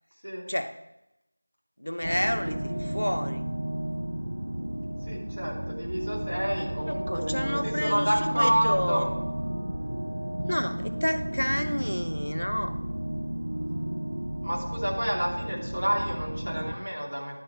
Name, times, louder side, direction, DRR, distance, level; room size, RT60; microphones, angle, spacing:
voice 1, 0.5-0.8 1.8-3.4 6.6-9.1 10.5-12.8, equal, 80° left, 7 dB, 0.8 m, -30 dB
sound 1, 2.0-16.7, right 1 dB, 30° right, 0.7 m, -33 dB
voice 2, 5.1-9.1 14.4-17.4, equal, 70° right, -3 dB, 2.7 m, -29 dB
11.5 x 4.8 x 4.6 m, 0.93 s
figure-of-eight pair, 180°, 0 cm